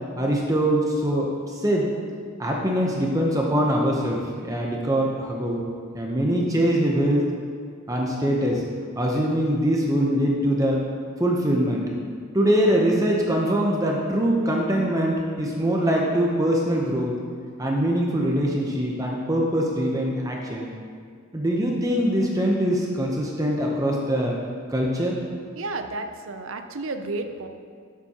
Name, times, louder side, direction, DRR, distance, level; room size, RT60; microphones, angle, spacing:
voice 1, 0.2-1.9 2.4-5.6 5.9-7.3 7.9-8.6 9.0-10.8 11.2-11.9 12.3-17.1 17.6-20.7 21.3-24.4 24.7-25.2, equal, 15° right, -1 dB, 0.7 m, -23 dB
voice 2, 25.5-27.5, right 2 dB, 65° right, 7 dB, 0.6 m, -32 dB
12.5 x 7.1 x 2.9 m, 2.1 s
head